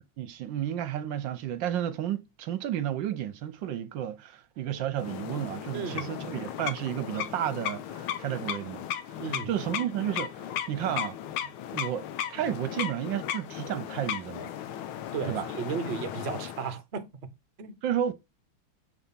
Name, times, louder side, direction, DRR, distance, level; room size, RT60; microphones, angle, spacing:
voice 1, 0.2-8.8 9.5-11.2 11.7-12.0 12.3-14.5 15.3-15.5 17.8-18.1, right 11 dB, 70° right, 1.3 m, -32 dB
sound 1, 5.0-16.8, left 10 dB, 85° left, 1.6 m, -36 dB
voice 2, 5.7-6.1 9.2-9.5 15.1-17.3 17.6-17.8, right 6 dB, 55° right, 0.7 m, -35 dB
7.3 x 3.6 x 5.6 m
omnidirectional pair, 2.3 m